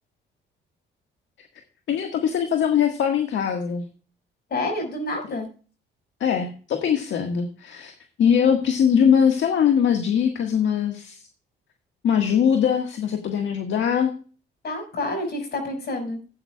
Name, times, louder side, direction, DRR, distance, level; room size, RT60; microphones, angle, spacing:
voice 1, 1.9-3.8 6.2-7.9 8.2-11.2 12.0-14.1, left 8 dB, 70° left, 5 dB, 1.6 m, -21 dB
voice 2, 4.5-5.5 14.6-16.2, left 2 dB, 55° left, 5 dB, 5.4 m, -28 dB
16.0 x 8.9 x 2.3 m, 0.37 s
cardioid pair, 90°, 20 cm